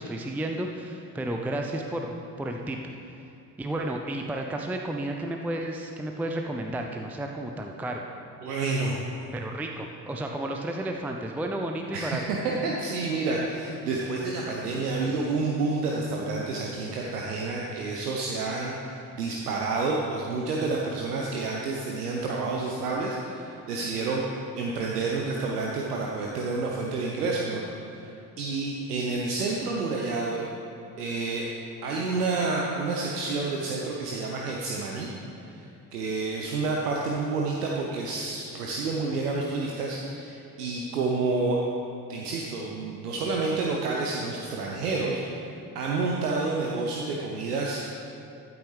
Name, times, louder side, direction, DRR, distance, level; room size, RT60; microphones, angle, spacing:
voice 1, 0.0-2.8 3.6-8.0 9.3-12.2, right 1 dB, 5° right, 2 dB, 0.5 m, -32 dB
voice 2, 8.4-9.0 11.9-24.2 24.6-27.6 27.9-30.5 31.0-31.5 31.8-35.1 35.5-35.6 35.9-41.6 42.1-45.5 45.7-47.8, right 3 dB, 75° right, -2 dB, 0.9 m, -29 dB
14.0 x 8.6 x 3.3 m, 2.7 s
figure-of-eight pair, 50°, 47 cm